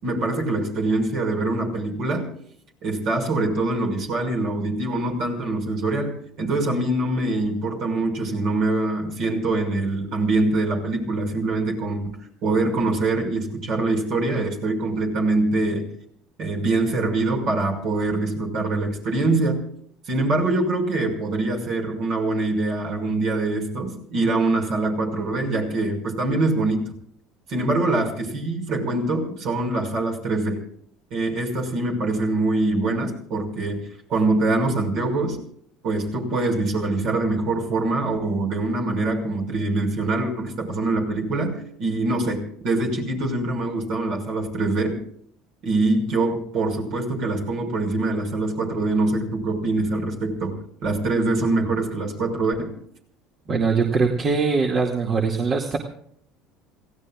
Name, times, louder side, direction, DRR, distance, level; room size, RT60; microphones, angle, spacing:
voice 1, 0.0-2.3 2.8-15.9 16.4-19.7 20.1-26.9 27.5-30.6 31.1-35.4 35.8-45.0 45.6-52.8, right 2 dB, 60° right, 2 dB, 5.8 m, -24 dB
voice 2, 53.5-55.8, right 4 dB, 40° right, 1 dB, 2.2 m, -22 dB
28.0 x 16.5 x 2.5 m, 0.65 s
hypercardioid pair, 80°, 0 cm